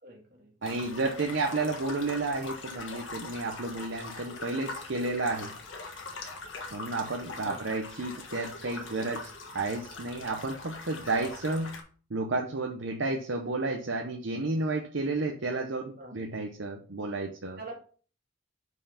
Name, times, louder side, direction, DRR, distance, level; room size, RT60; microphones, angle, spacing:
voice 1, 0.0-0.9 7.4-7.8 16.0-16.3 17.6-17.8, right 2 dB, 45° right, 0 dB, 2.1 m, -46 dB
sound 1, 0.6-11.8, left 3 dB, 65° left, 1.5 m, -42 dB
voice 2, 0.6-5.5 6.7-9.3 9.5-11.7 12.1-17.6, right 3 dB, 65° right, 2 dB, 0.8 m, -31 dB
5.5 x 4.7 x 5.6 m, 0.43 s
head